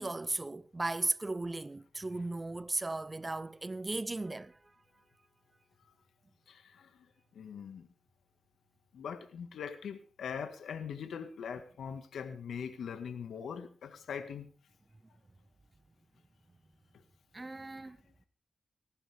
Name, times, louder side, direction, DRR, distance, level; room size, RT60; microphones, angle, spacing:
voice 1, 0.0-4.6 17.3-18.0, right 2 dB, 25° right, 0.7 m, -36 dB
voice 2, 6.5-7.1 7.3-7.9 8.9-14.5, left 7 dB, 90° left, 1.8 m, -42 dB
19.0 x 15.5 x 3.6 m
cardioid pair, 70°, 0 cm